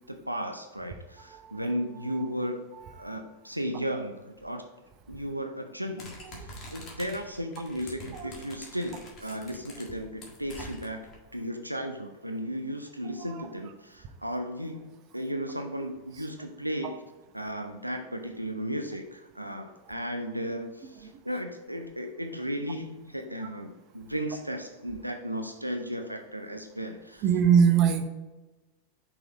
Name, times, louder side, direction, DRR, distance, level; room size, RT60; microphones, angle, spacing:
voice 1, 0.1-2.6 3.0-4.6 5.1-6.2 6.7-11.0 11.3-17.0 17.3-27.2, equal, 90° right, 5 dB, 0.5 m, -35 dB
voice 2, 1.3-1.7 2.1-2.3 2.7-3.2 6.2-6.5 8.1-8.3 13.0-13.5 16.2-16.3 21.0-21.1 23.4-23.5 27.2-28.0, right 7 dB, 35° right, 7 dB, 0.7 m, -25 dB
sound 1, 6.0-11.1, left 1 dB, 30° left, 1.6 m, -45 dB
5.9 x 4.2 x 4.1 m, 1.1 s
figure-of-eight pair, 90°, 0 cm